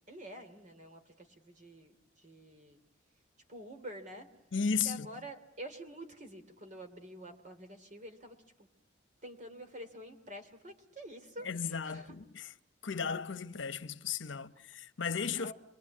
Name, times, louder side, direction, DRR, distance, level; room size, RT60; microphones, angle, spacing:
voice 1, 0.1-2.8 3.5-4.3 4.8-8.7 9.2-12.2 15.4-15.5, right 1 dB, 40° right, 2.9 m, -48 dB
voice 2, 4.5-5.1 11.4-12.5 12.8-15.5, left 6 dB, 85° left, 1.0 m, -35 dB
28.5 x 22.5 x 8.5 m
head